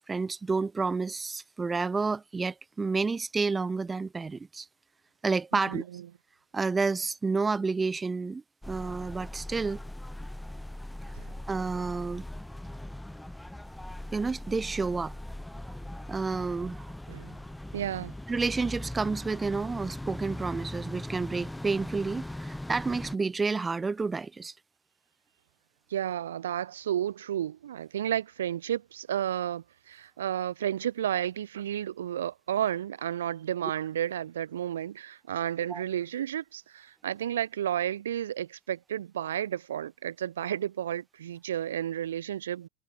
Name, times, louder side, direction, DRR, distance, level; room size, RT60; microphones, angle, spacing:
voice 1, 0.1-4.7 5.2-5.8 6.5-9.8 11.5-12.3 14.1-15.1 16.1-16.9 18.3-24.5 35.7-35.8, right 4 dB, 15° right, 1.8 m, -30 dB
voice 2, 5.5-6.0 11.2-11.3 17.1-17.3 17.7-18.1 25.9-42.7, right 10 dB, 80° right, 1.8 m, -32 dB
sound 1, 8.6-23.2, left 1 dB, 5° left, 3.5 m, -40 dB
hypercardioid pair, 105°, 0 cm